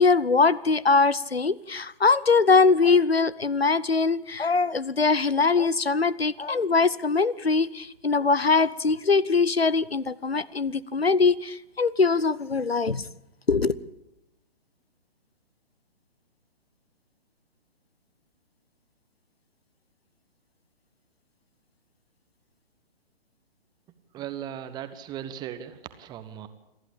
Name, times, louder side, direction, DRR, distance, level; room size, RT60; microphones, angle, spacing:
voice 1, 0.0-13.0 13.5-13.7, left 4 dB, 85° left, 22 dB, 0.8 m, -22 dB
voice 2, 24.1-26.5, right 10 dB, 15° right, 11 dB, 1.0 m, -37 dB
27.5 x 11.0 x 8.7 m, 0.89 s
figure-of-eight pair, 125°, 30 cm